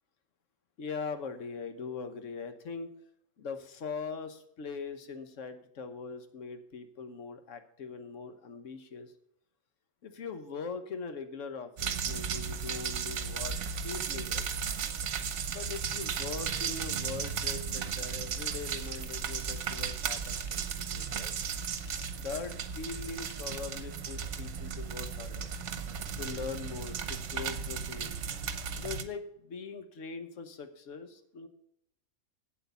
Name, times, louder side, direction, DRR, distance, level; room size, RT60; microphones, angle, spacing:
voice 1, 0.8-2.9 3.4-9.1 10.0-13.6 13.8-14.5 15.5-21.3 22.2-25.5 26.2-28.2 28.7-31.5, left 5 dB, 65° left, 9 dB, 1.4 m, -41 dB
sound 1, 11.8-29.0, right 6 dB, 60° right, 1.1 m, -35 dB
Ratchet pawl / Tools, 18.8-19.3 20.1-20.8 21.6-22.3 23.2-24.1 24.6-24.7, left 4 dB, 40° left, 0.9 m, -55 dB
8.2 x 7.8 x 6.9 m, 0.74 s
omnidirectional pair, 1.5 m